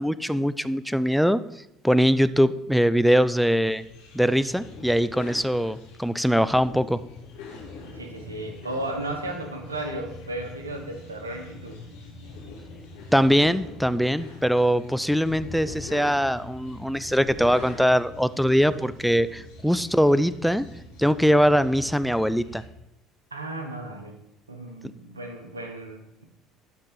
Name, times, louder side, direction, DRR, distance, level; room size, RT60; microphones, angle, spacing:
voice 1, 0.0-1.4 1.8-3.8 4.1-7.0 13.1-20.6 21.0-22.6, equal, ahead, 14 dB, 0.4 m, -22 dB
sound 1, 3.6-22.7, left 2 dB, 65° left, 1.6 m, -43 dB
voice 2, 7.9-11.8 23.3-24.1 24.5-26.2, right 1 dB, 80° right, 4 dB, 1.2 m, -34 dB
12.0 x 4.3 x 4.7 m, 0.81 s
figure-of-eight pair, 60°, 0 cm